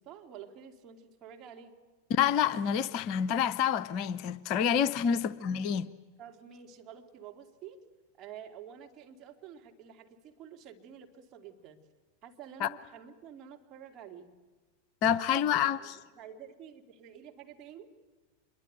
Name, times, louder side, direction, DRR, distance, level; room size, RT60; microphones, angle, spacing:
voice 1, 0.0-1.8 5.0-5.7 6.2-7.8 8.2-11.8 12.2-14.3 15.0-17.9, right 8 dB, 35° right, 2.6 m, -49 dB
voice 2, 2.1-5.9 12.6-12.7 15.0-15.8, left 8 dB, 40° left, 0.8 m, -27 dB
26.0 x 22.0 x 9.2 m
figure-of-eight pair, 90°, 0 cm